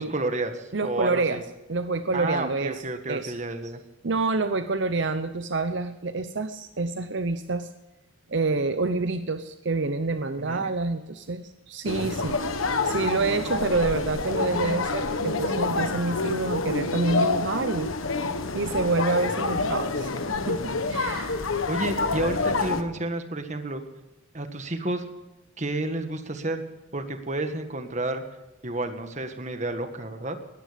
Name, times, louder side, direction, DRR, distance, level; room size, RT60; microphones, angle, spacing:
voice 1, 0.0-1.4 2.1-3.8 10.4-10.7 21.7-23.8 24.3-25.0 25.6-26.6 26.9-28.2 28.6-30.4, right 2 dB, 35° right, 7 dB, 1.6 m, -30 dB
voice 2, 0.7-1.4 1.7-2.8 3.1-3.3 4.0-7.7 8.3-17.9 18.5-21.4, right 3 dB, 60° right, 10 dB, 0.7 m, -27 dB
sound 1, 11.9-22.8, left 3 dB, 85° left, 1.4 m, -27 dB
19.5 x 14.0 x 5.2 m, 1.1 s
head